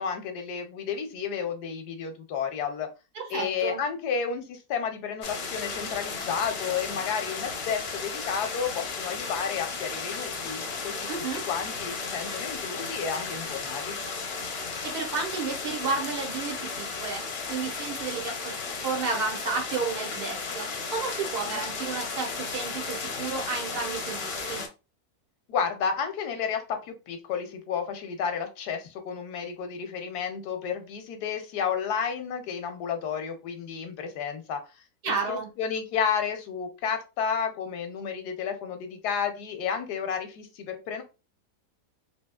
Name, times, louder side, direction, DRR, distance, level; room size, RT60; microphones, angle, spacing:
voice 1, 0.0-2.9 3.3-11.1 11.5-13.9 25.5-34.6 35.0-41.0, left 7 dB, 85° left, 6 dB, 1.3 m, -31 dB
voice 2, 3.1-3.8 11.1-11.4 14.5-18.6 18.8-24.7 35.0-35.5, right 4 dB, 80° right, 1 dB, 1.6 m, -32 dB
sound 1, 5.2-24.7, left 4 dB, 55° left, 0.7 m, -34 dB
3.4 x 2.8 x 2.3 m, 0.29 s
omnidirectional pair, 1.7 m